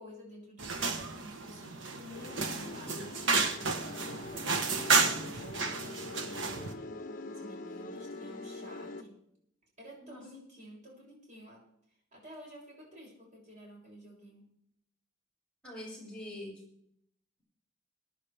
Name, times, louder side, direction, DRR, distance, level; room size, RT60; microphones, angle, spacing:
voice 1, 0.0-3.2 3.7-6.9 7.3-9.2 9.8-11.6 12.1-14.5, equal, 40° right, -3 dB, 6.9 m, -51 dB
sound 1, 0.6-6.7, right 4 dB, 80° right, 1.3 m, -31 dB
sound 2, 2.1-9.0, left 2 dB, 45° left, 1.1 m, -44 dB
voice 2, 15.6-16.6, left 1 dB, 5° left, -7 dB, 7.2 m, -44 dB
23.0 x 10.5 x 3.5 m, 0.73 s
head